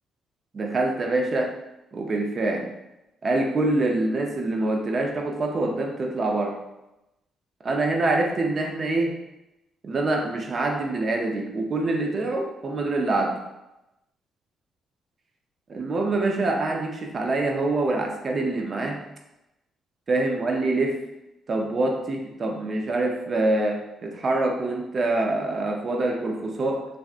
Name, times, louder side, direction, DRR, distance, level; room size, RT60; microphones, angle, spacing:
voice 1, 0.5-1.6 1.9-2.7 3.2-6.6 7.6-9.2 9.8-13.4 15.7-19.0 20.1-21.0 21.5-26.9, right 2 dB, 40° right, 2 dB, 0.5 m, -25 dB
3.4 x 2.5 x 2.4 m, 0.93 s
cardioid pair, 90°, 0 cm